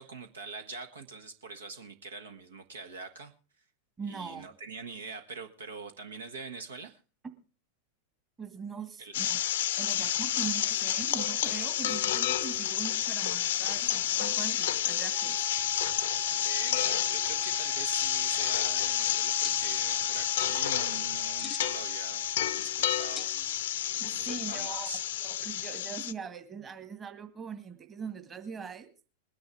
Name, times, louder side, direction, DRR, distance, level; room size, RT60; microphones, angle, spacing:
voice 1, 0.0-3.3 4.0-7.0 9.0-9.2 10.3-10.4 16.3-22.2 22.5-23.3 23.9-25.0, right 4 dB, 70° right, 7 dB, 1.4 m, -44 dB
voice 2, 4.0-4.5 7.2-7.3 8.4-9.4 9.8-15.5 24.0-24.9 25.2-28.9, right 6 dB, 20° right, 9 dB, 1.9 m, -41 dB
sound 1, 9.1-26.1, left 11 dB, 60° left, 0.7 m, -30 dB
Wind instrument woodwind instrument, 15.1-22.5, right 22 dB, 45° right, 5.1 m, -45 dB
sound 2, 18.1-18.6 19.4-19.6 21.1-21.8 22.2-22.8 23.1-23.7, left 5 dB, 15° left, 0.7 m, -44 dB
21.5 x 10.5 x 3.5 m, 0.36 s
figure-of-eight pair, 90°, 0 cm